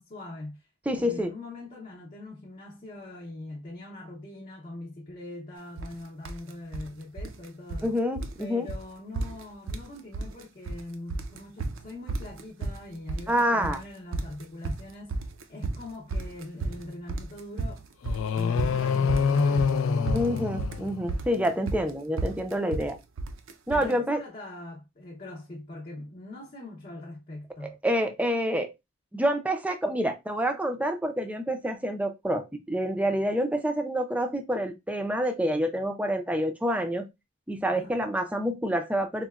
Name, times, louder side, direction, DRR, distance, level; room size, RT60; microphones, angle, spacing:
voice 1, 0.0-0.7 1.0-7.9 8.4-15.2 15.5-20.2 23.7-27.8 37.7-38.0, left 2 dB, 40° left, 0.6 m, -41 dB
voice 2, 0.9-1.3 7.8-8.7 13.3-13.8 20.1-23.0 23.7-24.2 27.6-28.7 29.1-37.0 37.5-39.3, equal, 5° right, 0.4 m, -27 dB
sound 1, 5.8-6.0 6.3-6.9 7.2-7.9 8.2-8.4 8.7-8.8 9.2-9.9 10.1-10.8 11.1-23.9, right 3 dB, 80° right, 0.5 m, -33 dB
sound 2, 18.0-21.4, left 6 dB, 80° left, 0.3 m, -26 dB
3.9 x 2.1 x 2.3 m
head